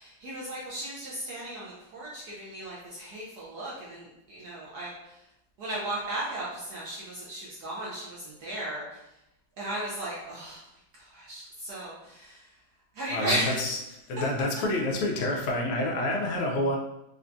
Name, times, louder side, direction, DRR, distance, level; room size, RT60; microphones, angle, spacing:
voice 1, 0.0-5.3 5.6-9.1 9.6-10.6 10.9-12.5 12.9-13.7, right 1 dB, 70° right, -6 dB, 1.0 m, -35 dB
voice 2, 13.1-13.8 14.1-16.8, left 1 dB, 85° left, 1 dB, 1.5 m, -28 dB
4.4 x 2.3 x 2.5 m, 0.89 s
omnidirectional pair, 2.3 m